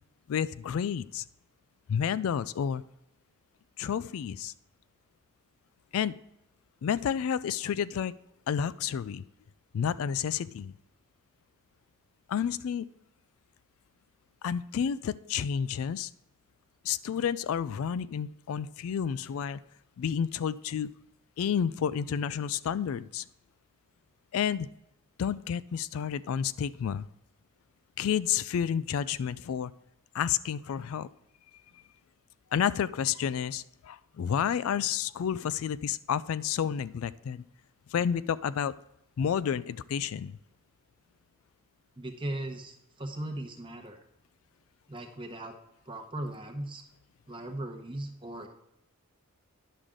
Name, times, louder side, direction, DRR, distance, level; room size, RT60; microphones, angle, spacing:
voice 1, 0.3-1.2 1.9-2.8 3.8-4.5 5.9-6.2 6.8-8.1 8.5-9.2 9.7-10.7 12.3-12.9 14.4-16.1 16.8-19.6 20.0-20.9 21.4-23.2 24.3-24.7 25.2-27.1 28.0-29.7 30.1-31.1 32.5-37.4 37.9-38.7 39.2-40.4, left 8 dB, 70° left, 16 dB, 0.3 m, -30 dB
voice 2, 42.0-44.0 44.9-45.5 45.9-46.8 47.3-48.5, right 1 dB, 20° right, 4 dB, 0.9 m, -38 dB
10.0 x 6.5 x 3.7 m, 0.83 s
head